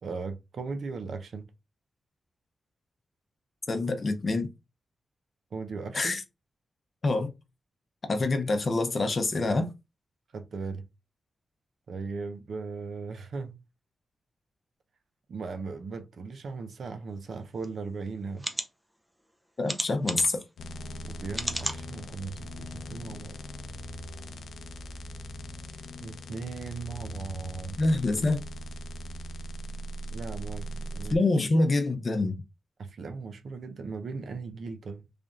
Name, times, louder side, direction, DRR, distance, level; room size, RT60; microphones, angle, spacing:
voice 1, 0.0-1.4 5.5-6.2 10.3-10.8 11.9-13.6 15.3-18.5 21.0-23.4 26.0-27.8 30.1-31.2 32.8-35.0, right 4 dB, 60° right, 0.5 m, -38 dB
voice 2, 3.7-4.5 5.9-6.2 7.0-7.3 8.1-9.7 19.6-20.4 27.8-28.4 31.1-32.4, left 2 dB, 35° left, 0.6 m, -26 dB
sound 1, 17.6-17.7 18.4-18.7 19.7-20.4 21.3-21.8 22.4-22.5 22.8-22.9, equal, 5° right, 0.5 m, -32 dB
sound 2, 20.6-31.1, equal, 80° left, 0.5 m, -40 dB
3.3 x 2.6 x 3.6 m
wide cardioid pair, 150°, 0 cm